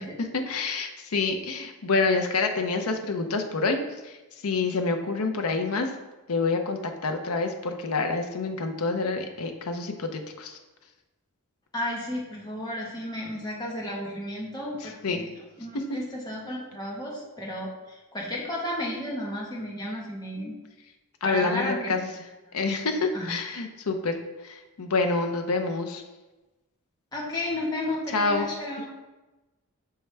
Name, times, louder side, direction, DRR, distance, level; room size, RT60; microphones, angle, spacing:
voice 1, 0.2-4.1 4.4-5.9 6.3-10.5 15.0-15.2 15.7-16.0 21.2-22.1 22.5-26.0 28.1-28.5, left 3 dB, 85° left, 5 dB, 0.7 m, -27 dB
voice 2, 11.7-15.3 15.6-20.6 21.2-22.0 23.1-23.3 27.1-28.9, left 1 dB, 20° left, -4 dB, 1.2 m, -33 dB
6.5 x 4.6 x 3.3 m, 1.1 s
head